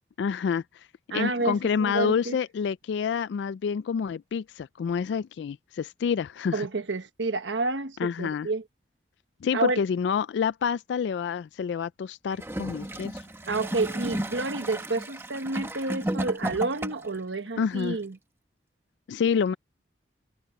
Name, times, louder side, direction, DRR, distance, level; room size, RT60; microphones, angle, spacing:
voice 1, 0.2-0.9 1.1-6.7 8.0-8.5 9.4-13.2 17.6-18.0 19.1-19.6, left 6 dB, 75° left, 0.3 m, -28 dB
voice 2, 1.1-2.4 6.5-8.6 9.5-9.8 13.5-18.2, right 3 dB, 85° right, 1.2 m, -29 dB
Gurgling / Toilet flush, 12.3-17.2 18.0-18.1, right 1 dB, 15° right, 1.1 m, -33 dB
head